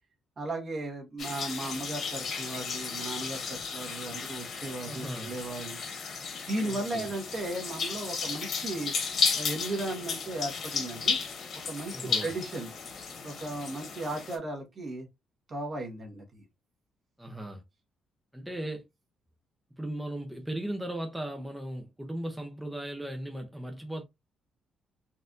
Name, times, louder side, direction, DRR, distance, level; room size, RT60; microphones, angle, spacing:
voice 1, 0.4-5.8 6.4-8.9 9.4-11.2 11.6-12.7 13.2-15.1 15.5-16.4, right 2 dB, 45° right, 1.3 m, -36 dB
sound 1, 1.2-14.4, left 5 dB, 60° left, 1.4 m, -34 dB
voice 2, 4.9-5.3 6.7-7.1 11.9-12.3 17.2-17.6 18.3-18.8 19.8-24.0, right 1 dB, 5° right, 0.7 m, -37 dB
4.1 x 2.6 x 2.5 m
cardioid pair, 90°, 0 cm